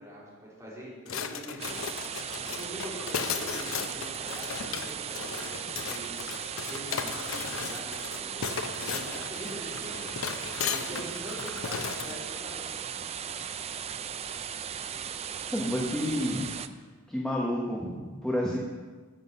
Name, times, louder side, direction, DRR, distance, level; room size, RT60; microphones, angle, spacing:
voice 1, 0.0-1.8 2.4-6.2 6.7-10.1 10.7-12.8, equal, 15° right, -8 dB, 3.6 m, -43 dB
sound 1, 1.1-12.2, left 6 dB, 80° left, 0.7 m, -36 dB
sound 2, 1.6-16.7, right 8 dB, 30° right, 0.3 m, -37 dB
voice 2, 15.4-16.5 17.1-18.6, equal, 5° left, -4 dB, 1.0 m, -30 dB
9.3 x 7.8 x 5.5 m, 1.4 s
head